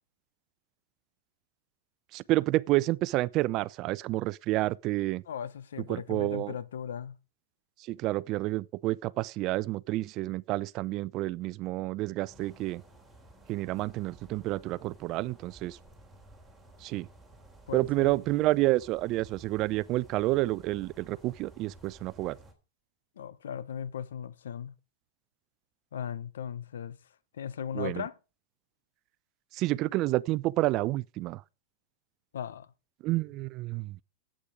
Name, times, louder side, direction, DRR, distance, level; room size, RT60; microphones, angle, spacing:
voice 1, 2.1-5.2 5.9-6.5 7.9-12.8 13.5-15.8 16.8-17.1 17.7-22.4 27.7-28.0 29.5-31.4 33.0-34.0, right 18 dB, 40° right, 0.5 m, -29 dB
voice 2, 5.3-7.2 17.7-18.1 23.2-24.7 25.9-27.0 27.3-28.2 32.3-32.7, left 8 dB, 90° left, 0.9 m, -37 dB
sound 1, 12.3-22.5, right 2 dB, 5° right, 3.2 m, -54 dB
11.5 x 8.6 x 5.0 m
hypercardioid pair, 130°, 0 cm